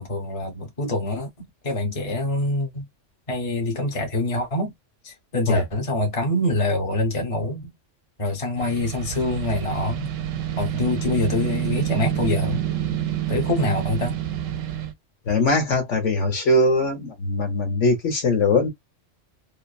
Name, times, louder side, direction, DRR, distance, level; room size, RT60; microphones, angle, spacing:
voice 1, 0.0-2.9 3.3-4.7 5.0-7.7 8.2-10.1 10.6-12.6 13.3-14.2, left 2 dB, 30° left, 1.0 m, -25 dB
sound 1, 8.6-14.9, right 10 dB, 85° right, 0.9 m, -28 dB
voice 2, 15.3-18.7, left 2 dB, 75° left, 1.5 m, -21 dB
3.1 x 2.0 x 2.4 m
omnidirectional pair, 1.3 m